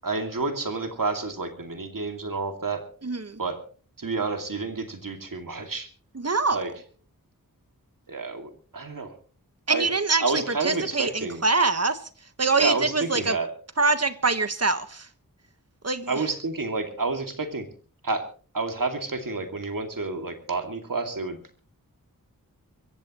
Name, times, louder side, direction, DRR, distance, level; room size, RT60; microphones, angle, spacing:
voice 1, 0.0-2.8 3.4-3.6 4.0-5.9 6.5-6.7 8.1-9.1 9.7-9.9 10.2-11.4 12.6-13.5 16.1-17.7 18.0-18.2 18.5-21.4, right 3 dB, 65° right, 2.4 m, -29 dB
voice 2, 3.0-3.4 6.1-6.6 9.7-12.0 12.4-13.3 13.8-15.1 15.8-16.2, right 3 dB, 45° right, 1.4 m, -24 dB
24.0 x 15.0 x 3.1 m
wide cardioid pair, 55°, 35 cm